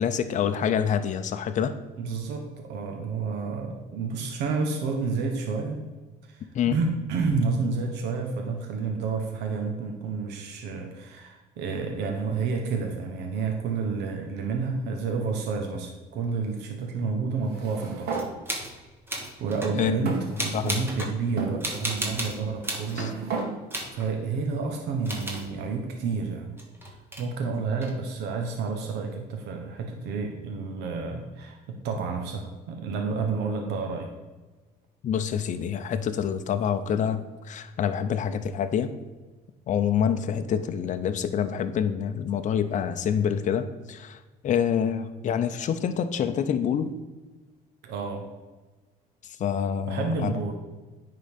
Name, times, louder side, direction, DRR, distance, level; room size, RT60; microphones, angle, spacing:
voice 1, 0.0-1.7 6.5-6.8 19.7-20.0 20.5-20.9 23.0-23.1 35.0-38.9 39.7-46.9 49.4-50.3, left 8 dB, 45° left, 9 dB, 0.6 m, -26 dB
voice 2, 2.0-5.8 6.2-18.2 19.4-23.2 23.9-26.6 27.2-34.1 47.8-48.3 49.9-50.5, right 4 dB, 85° right, 3 dB, 1.0 m, -30 dB
sound 1, 17.4-18.3 19.1-19.2 20.0-20.9 21.4-21.6 22.4-23.5, right 4 dB, 70° right, 1.8 m, -33 dB
sound 2, 18.1-18.7 19.1-19.8 20.4-21.2 21.6-23.0 23.7-24.1 25.0-25.5 26.6-27.2 27.8-28.0, right 1 dB, 15° right, 1.7 m, -33 dB
9.7 x 3.8 x 5.2 m, 1.3 s
cardioid pair, 110°, 17 cm